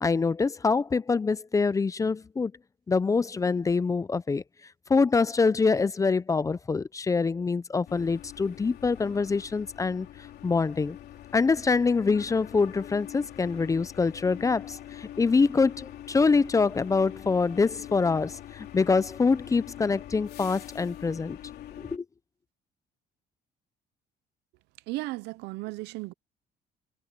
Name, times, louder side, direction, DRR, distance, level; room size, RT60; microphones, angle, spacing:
voice 1, 0.0-2.5 2.9-4.4 4.9-10.1 10.4-11.0 11.3-21.4 21.8-22.0, left 4 dB, 20° left, 0.5 m, -25 dB
sound 1, 7.9-22.0, left 12 dB, 70° left, 3.6 m, -44 dB
voice 2, 24.9-26.1, right 20 dB, 90° right, 0.6 m, -35 dB
cardioid pair, 110°, 17 cm